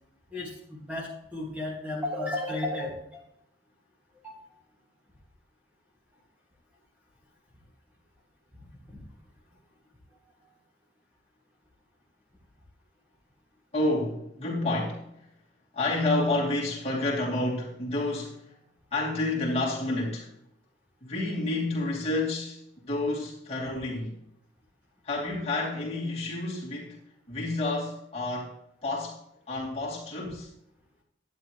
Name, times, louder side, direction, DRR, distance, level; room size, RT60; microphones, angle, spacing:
voice 1, 0.3-3.2 4.2-4.4 8.9-9.0 10.2-10.3, left 1 dB, 10° right, 2.0 m, -34 dB
voice 2, 13.7-15.0 15.7-18.5 18.9-20.3 21.0-24.2 25.0-27.0 27.3-28.6 28.8-29.2 29.5-30.5, left 2 dB, 30° left, 2.8 m, -29 dB
11.5 x 9.5 x 3.1 m
head